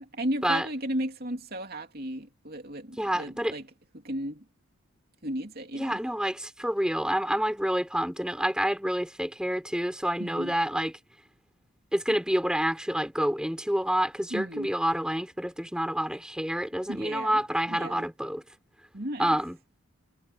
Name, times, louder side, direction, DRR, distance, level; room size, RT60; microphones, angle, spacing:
voice 1, 0.1-3.7 3.9-4.4 5.2-6.0 10.2-10.5 14.3-14.7 16.9-18.1 18.9-19.4, right 1 dB, 45° right, 3.0 m, -35 dB
voice 2, 3.0-3.5 5.7-10.9 11.9-18.4 19.2-19.6, equal, 5° right, 4.9 m, -28 dB
head